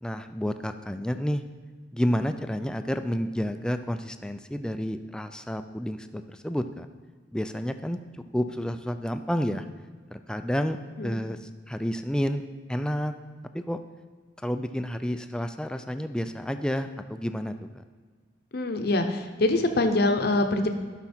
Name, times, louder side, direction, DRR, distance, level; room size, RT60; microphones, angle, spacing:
voice 1, 0.0-1.4 1.9-6.9 7.3-9.6 10.1-12.4 12.7-13.1 13.5-13.8 14.4-17.8, equal, 5° left, 8 dB, 0.4 m, -30 dB
voice 2, 18.5-20.7, left 2 dB, 60° left, 6 dB, 0.8 m, -24 dB
11.5 x 6.0 x 4.4 m, 1.5 s
head